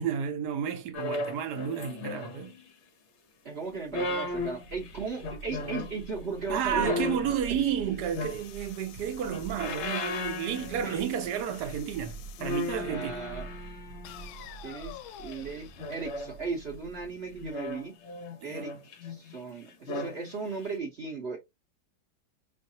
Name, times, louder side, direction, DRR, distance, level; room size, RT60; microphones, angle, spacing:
voice 1, 0.0-2.5 6.5-13.2 18.4-18.6, right 8 dB, 65° right, 1.1 m, -31 dB
sound 1, 0.9-2.7 3.7-6.0 6.7-8.8 9.2-11.3 11.5-11.8 12.4-14.4 15.3-16.6 17.4-19.4 19.7-20.2 20.6-20.7, left 2 dB, 55° left, 0.8 m, -36 dB
voice 2, 3.4-7.2 7.5-7.6 10.8-11.0 12.9-13.5 14.6-18.0 18.4-18.8 19.0-21.4, right 4 dB, 50° right, 0.7 m, -37 dB
Thunder / Rain, 3.7-17.8, right 5 dB, 85° right, 1.5 m, -47 dB
sound 2, 8.0-12.9 14.0-17.0, left 12 dB, 85° left, 1.3 m, -50 dB
5.4 x 2.5 x 2.7 m
omnidirectional pair, 2.1 m